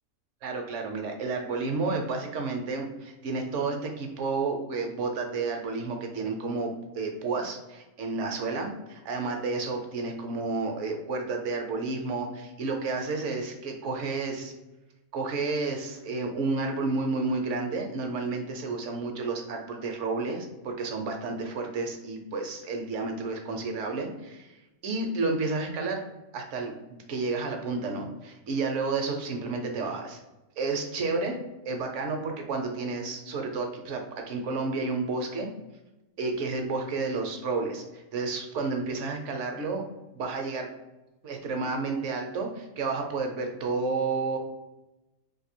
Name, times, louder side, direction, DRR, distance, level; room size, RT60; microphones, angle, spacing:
voice 1, 0.4-14.5 15.1-24.5 24.8-26.0 26.3-30.2 30.6-31.4 31.6-35.5 36.2-39.8 40.1-40.7 41.2-44.4, right 3 dB, 65° right, 3 dB, 0.8 m, -31 dB
2.6 x 2.6 x 4.3 m, 1.0 s
omnidirectional pair, 1.6 m